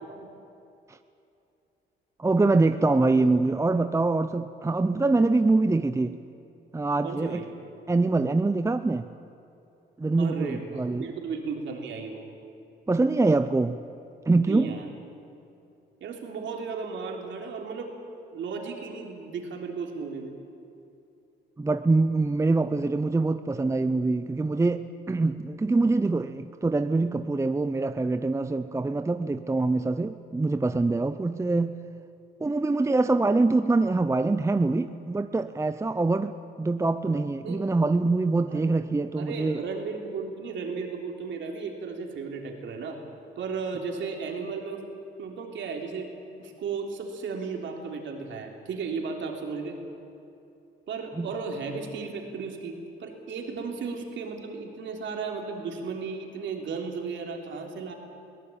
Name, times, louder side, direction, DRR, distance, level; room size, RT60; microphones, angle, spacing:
voice 1, 2.2-6.2 6.7-7.4 7.9-9.1 10.0-11.1 12.9-13.8 14.3-14.7 21.6-31.7 32.4-36.3 36.6-39.6 51.2-51.3, right 3 dB, 15° right, 10 dB, 0.6 m, -24 dB
voice 2, 7.0-7.5 10.2-12.2 14.5-14.9 16.0-17.9 18.3-20.3 37.4-37.7 38.4-38.7 39.2-43.0 43.4-44.8 45.2-46.1 46.4-49.8 50.9-57.9, right 5 dB, 70° right, 2 dB, 3.6 m, -35 dB
23.0 x 17.5 x 8.7 m, 2.7 s
cardioid pair, 90°, 20 cm